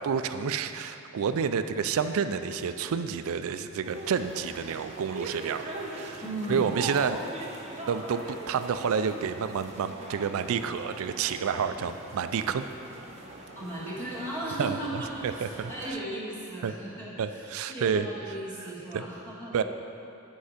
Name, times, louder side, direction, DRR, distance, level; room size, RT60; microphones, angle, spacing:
voice 1, 0.0-6.2 6.5-7.2 7.9-12.6 14.6-16.0 16.6-16.7 17.2-18.1 18.6-19.0 19.5-19.6, right 6 dB, 65° right, 10 dB, 0.4 m, -29 dB
sound 1, 3.8-15.9, right 2 dB, 30° right, 0.9 m, -41 dB
voice 2, 6.2-6.8 13.6-19.6, right 1 dB, 10° left, -10 dB, 1.7 m, -37 dB
8.1 x 5.5 x 5.0 m, 2.9 s
head